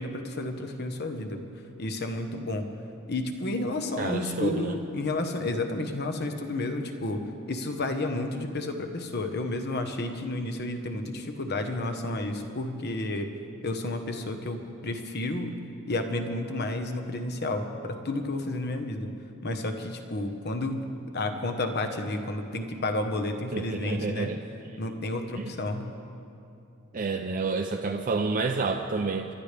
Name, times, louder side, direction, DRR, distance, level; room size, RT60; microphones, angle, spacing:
voice 1, 0.0-1.4 1.8-2.7 3.1-13.3 13.6-15.6 15.9-19.1 19.4-24.3 24.8-25.9, left 2 dB, 50° left, 6 dB, 1.1 m, -31 dB
voice 2, 4.0-4.8 23.5-24.4 25.4-25.5 26.9-29.3, right 4 dB, 40° right, 3 dB, 0.5 m, -29 dB
27.0 x 12.0 x 3.4 m, 2.7 s
head